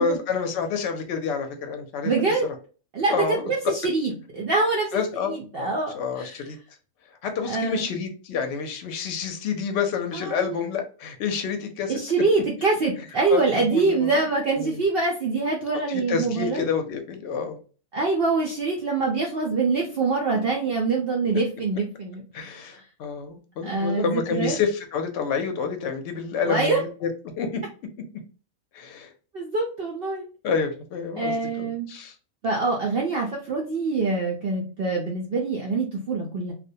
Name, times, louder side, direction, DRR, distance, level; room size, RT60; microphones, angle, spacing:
voice 1, 0.0-2.3 3.1-3.5 4.9-5.3 5.6-6.6 7.2-12.0 13.3-14.1 14.6-14.8 15.9-17.6 22.3-27.1 27.4-27.6 28.7-29.1 30.4-32.1, left 5 dB, 65° left, 5 dB, 0.8 m, -28 dB
voice 2, 2.0-2.5 2.9-6.4 7.5-7.9 10.1-10.6 11.9-16.7 17.9-22.8 23.6-24.6 26.4-26.8 29.3-30.3 31.2-31.9 32.4-36.5, right 3 dB, 60° right, -1 dB, 0.6 m, -25 dB
2.3 x 2.1 x 2.6 m, 0.38 s
omnidirectional pair, 1.4 m